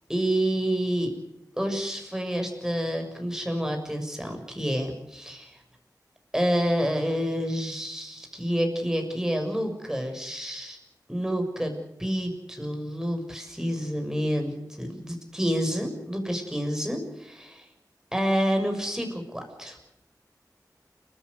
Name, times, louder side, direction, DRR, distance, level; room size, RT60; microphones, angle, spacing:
voice 1, 0.1-1.1 1.6-5.6 6.3-10.8 11.1-11.7 12.0-17.7 18.1-19.8, equal, 10° right, 4 dB, 6.7 m, -28 dB
30.0 x 14.0 x 8.1 m, 0.88 s
wide cardioid pair, 70°, 7 cm